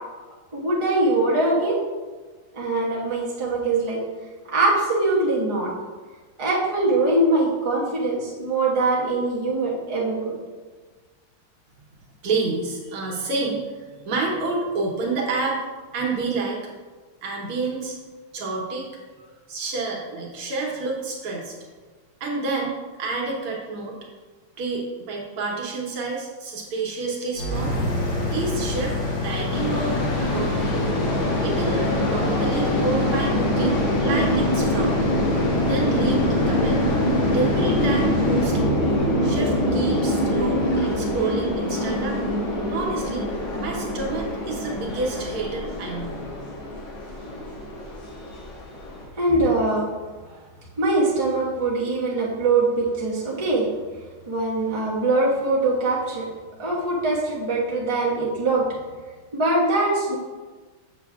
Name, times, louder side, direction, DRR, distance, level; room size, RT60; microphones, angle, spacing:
voice 1, 0.5-1.8 2.5-4.0 4.5-5.7 6.4-10.3 49.2-49.9 50.8-53.7 54.3-56.3 56.6-58.7 59.3-60.2, right 2 dB, 20° right, -6 dB, 0.9 m, -22 dB
voice 2, 12.2-13.7 14.1-15.6 15.9-16.6 17.2-18.0 18.3-18.9 19.5-21.5 22.2-24.0 24.6-27.8 28.3-30.6 31.4-35.0 35.6-36.9 37.3-38.8 39.2-42.2 42.7-43.3 43.6-46.2, right 3 dB, 75° right, -1 dB, 1.9 m, -29 dB
sound 1, 27.3-41.3, left 2 dB, 80° left, 3.1 m, -27 dB
sound 2, 29.5-49.0, equal, 65° left, 2.1 m, -25 dB
7.0 x 6.7 x 2.4 m, 1.4 s
omnidirectional pair, 2.4 m